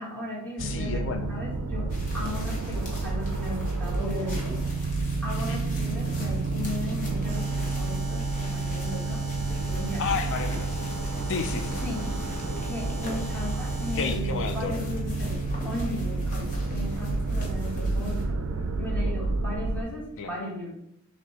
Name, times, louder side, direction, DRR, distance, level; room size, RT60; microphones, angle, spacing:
voice 1, 0.0-4.8 5.2-10.1 11.8-12.1 12.6-18.4 18.8-20.7, left 1 dB, 10° left, -6 dB, 1.1 m, -36 dB
voice 2, 0.6-1.3 5.4-5.6 10.0-11.8 13.9-14.8 20.2-20.3, left 5 dB, 60° left, 7 dB, 0.4 m, -32 dB
sound 1, 0.6-19.8, right 3 dB, 65° right, 0.4 m, -30 dB
sound 2, 1.9-18.2, left 1 dB, 35° left, 0.9 m, -44 dB
Alarm, 7.3-14.3, right 2 dB, 30° right, 0.7 m, -43 dB
6.0 x 2.2 x 2.8 m, 0.78 s
head